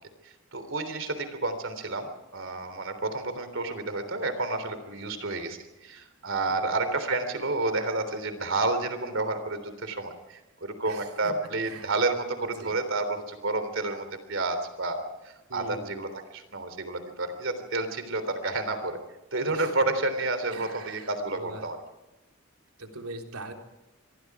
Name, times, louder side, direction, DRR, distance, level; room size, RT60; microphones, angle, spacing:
voice 1, 0.5-2.1 2.3-19.0 19.3-21.8, right 2 dB, 60° right, 10 dB, 3.4 m, -30 dB
voice 2, 10.9-11.3 11.7-11.9 12.6-12.8 15.5-16.0 19.5-19.7 20.5-21.7 22.8-23.5, right 2 dB, 85° right, 3 dB, 3.6 m, -42 dB
26.5 x 22.5 x 4.9 m, 0.99 s
head